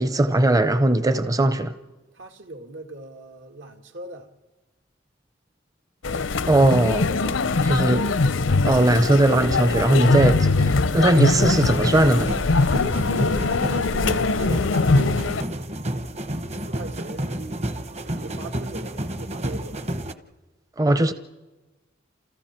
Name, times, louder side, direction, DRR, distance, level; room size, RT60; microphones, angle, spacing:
voice 1, 0.0-1.7 6.5-7.1 7.6-8.1 8.6-12.3 20.8-21.1, right 1 dB, 20° right, 0.6 m, -19 dB
voice 2, 2.1-4.3 6.7-7.6 13.2-15.8 16.5-17.7 18.1-19.9, right 2 dB, 80° right, 2.3 m, -40 dB
sound 1, 6.0-15.4, left 3 dB, 90° left, 0.7 m, -22 dB
sound 2, 11.1-20.1, right 1 dB, 35° right, 1.0 m, -31 dB
30.0 x 28.5 x 4.5 m
head